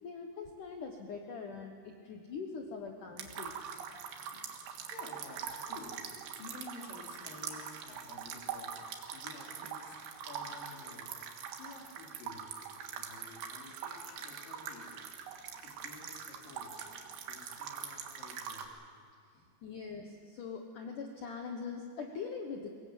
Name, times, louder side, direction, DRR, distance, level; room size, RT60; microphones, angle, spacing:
voice 1, 0.0-3.5 19.6-22.7, left 5 dB, 80° left, 3 dB, 1.8 m, -42 dB
sound 1, 3.2-18.7, right 7 dB, 65° right, 3.3 m, -43 dB
voice 2, 4.9-12.5 13.0-15.2 15.6-16.9 17.3-18.7 19.3-19.5, left 3 dB, 50° left, 0 dB, 4.2 m, -52 dB
23.0 x 19.5 x 7.8 m, 2.2 s
omnidirectional pair, 5.7 m